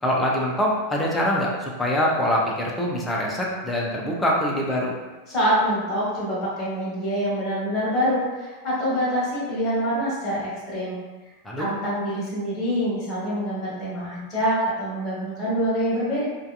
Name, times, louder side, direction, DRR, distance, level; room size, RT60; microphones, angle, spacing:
voice 1, 0.0-4.9 11.4-11.7, equal, 10° left, -3 dB, 0.5 m, -24 dB
voice 2, 5.3-11.0 11.6-16.2, equal, 25° left, -8 dB, 1.3 m, -25 dB
2.7 x 2.3 x 2.3 m, 1.2 s
figure-of-eight pair, 90°, 0 cm